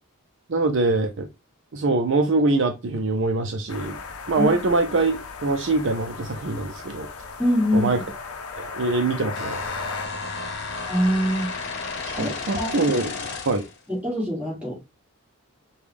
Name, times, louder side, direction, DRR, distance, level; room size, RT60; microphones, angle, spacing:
voice 1, 0.5-1.3 1.7-4.0 4.3-7.1 7.7-8.0 8.6-9.6 12.2-13.6, right 3 dB, 55° right, 0.5 m, -23 dB
sound 1, 3.7-10.1, left 4 dB, 85° left, 0.6 m, -37 dB
voice 2, 7.4-8.0 10.9-11.5 12.1-12.7 13.9-14.8, equal, 5° right, 1.9 m, -24 dB
sound 2, 9.4-13.8, left 4 dB, 50° left, 1.0 m, -32 dB
5.1 x 2.3 x 3.3 m
head